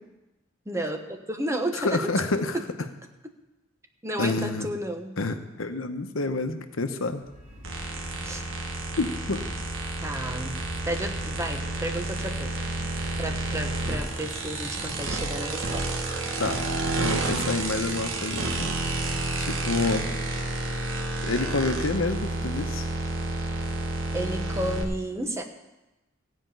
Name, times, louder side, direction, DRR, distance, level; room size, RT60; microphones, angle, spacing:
voice 1, 0.7-2.0 2.5-2.6 4.0-5.2 8.2-8.4 10.0-10.6 10.8-12.6 13.2-15.9 24.1-25.4, right 1 dB, 15° right, 5 dB, 1.0 m, -32 dB
voice 2, 1.8-2.6 4.2-4.7 5.2-7.2 9.0-9.5 16.4-18.7 19.4-20.1 21.2-22.8, left 3 dB, 85° left, 8 dB, 1.0 m, -28 dB
sound 1, 7.1-19.2, right 1 dB, 40° right, 4.7 m, -44 dB
sound 2, 7.6-24.8, right 2 dB, 75° right, 1.6 m, -30 dB
15.5 x 5.2 x 9.2 m, 1.0 s
head